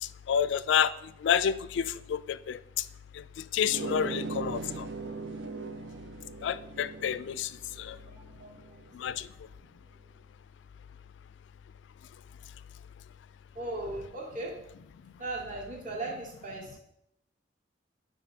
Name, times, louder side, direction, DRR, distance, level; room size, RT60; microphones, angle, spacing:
voice 1, 0.0-2.9 3.1-4.9 6.4-8.0 8.9-9.3, left 8 dB, 80° left, 16 dB, 0.3 m, -30 dB
sound 1, 3.6-8.9, right 4 dB, 85° right, 0.5 m, -40 dB
voice 2, 8.2-8.6 9.1-9.2 13.5-14.5 15.2-16.8, right 2 dB, 45° right, -3 dB, 2.2 m, -37 dB
8.5 x 4.0 x 5.0 m, 0.80 s
head